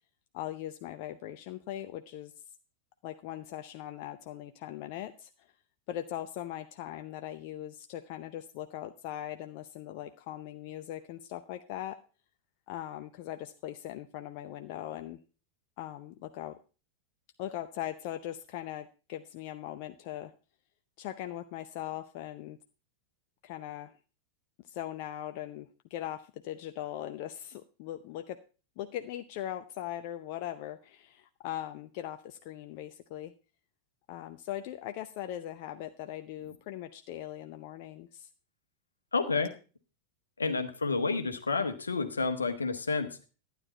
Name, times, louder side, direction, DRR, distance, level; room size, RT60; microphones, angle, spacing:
voice 1, 0.3-2.3 3.0-5.3 5.9-12.0 12.7-15.2 15.8-16.6 17.4-20.3 21.0-22.6 23.4-23.9 24.7-28.4 28.8-33.3 34.1-38.3, left 12 dB, 45° left, 8 dB, 0.6 m, -40 dB
voice 2, 39.1-39.5 40.4-43.3, left 4 dB, 75° left, 8 dB, 1.2 m, -30 dB
12.0 x 9.3 x 4.3 m, 0.34 s
figure-of-eight pair, 90°, 0 cm